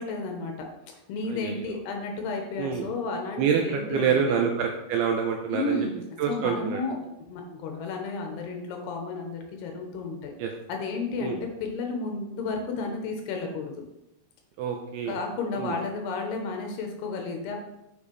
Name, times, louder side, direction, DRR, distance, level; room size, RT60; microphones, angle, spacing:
voice 1, 0.0-4.4 5.5-6.0 6.3-7.0 7.3-10.3 10.7-13.7 15.1-17.6, left 3 dB, 75° left, 2 dB, 2.8 m, -32 dB
voice 2, 1.3-1.8 2.6-2.9 3.4-5.8 6.2-6.8 10.4-10.5 11.2-11.4 14.6-15.2 15.6-15.7, right 7 dB, 80° right, 2 dB, 2.3 m, -27 dB
7.1 x 6.8 x 3.3 m, 0.88 s
omnidirectional pair, 5.1 m